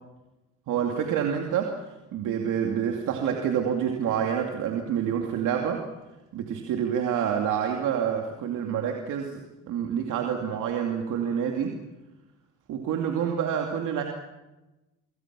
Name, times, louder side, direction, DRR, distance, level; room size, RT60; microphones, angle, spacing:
voice 1, 0.7-5.8 6.3-11.7 12.7-14.0, right 8 dB, 90° right, 2 dB, 2.6 m, -28 dB
26.0 x 24.5 x 6.1 m, 1.0 s
cardioid pair, 90°, 30 cm